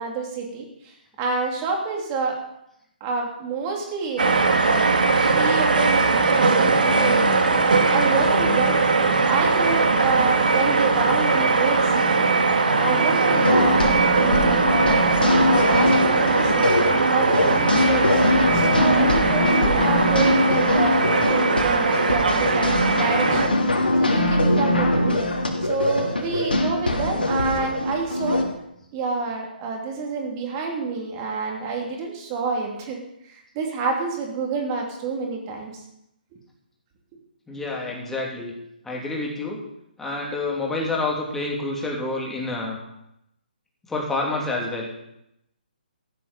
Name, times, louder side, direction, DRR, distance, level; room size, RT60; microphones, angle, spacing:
voice 1, 0.0-2.4 3.0-4.3 4.6-4.9 5.3-7.3 7.9-12.3 12.8-15.0 15.3-18.2 18.5-23.6 24.0-25.2 25.6-28.4 28.9-33.0 33.2-35.8, right 4 dB, 25° right, 1 dB, 3.0 m, -28 dB
sound 1, 4.2-23.5, right 4 dB, 60° right, 2.0 m, -20 dB
sound 2, 13.3-28.4, left 2 dB, 75° left, 3.3 m, -22 dB
voice 2, 37.5-38.5 38.8-39.6 40.0-42.8 43.9-44.9, left 2 dB, 5° left, -2 dB, 2.9 m, -28 dB
15.0 x 11.0 x 5.3 m, 0.80 s
figure-of-eight pair, 135°, 5 cm